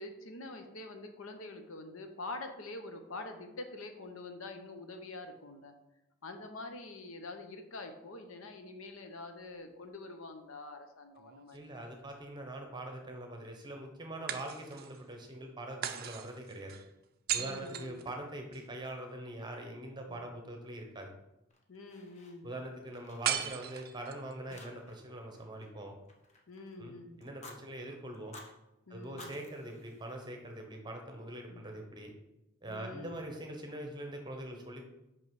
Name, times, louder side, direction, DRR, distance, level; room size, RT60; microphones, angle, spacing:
voice 1, 0.0-5.7 6.2-11.9 14.3-14.4 17.3-18.0 20.1-20.2 21.7-22.5 24.5-24.6 26.5-27.2 28.9-29.3 31.5-31.6 32.7-33.3, left 2 dB, 65° left, 6 dB, 0.8 m, -46 dB
sound 1, 11.2-12.2 14.3-15.0 15.8-18.7 23.2-24.3, right 10 dB, 45° right, 0.4 m, -38 dB
voice 2, 11.5-16.8 17.3-21.1 22.4-26.0 26.8-28.4 28.9-32.1 32.6-34.8, right 1 dB, 20° right, 3 dB, 1.0 m, -43 dB
Fire, 21.5-22.6 22.9-24.1 24.5-25.1 25.3-26.7 27.2-27.6 28.1-28.5 29.0-30.6, left 2 dB, 30° left, 0.9 m, -54 dB
5.5 x 5.5 x 4.7 m, 0.93 s
head